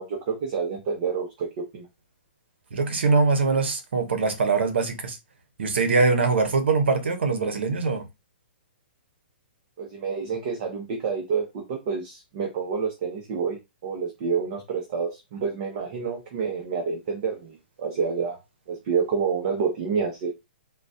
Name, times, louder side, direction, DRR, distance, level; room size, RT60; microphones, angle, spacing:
voice 1, 0.0-1.9 9.8-18.4 18.7-20.3, right 5 dB, 40° right, 0.9 m, -28 dB
voice 2, 2.7-5.2 5.6-8.0, right 4 dB, 85° right, 0.9 m, -22 dB
3.8 x 2.3 x 2.7 m
hypercardioid pair, 160°, 6 cm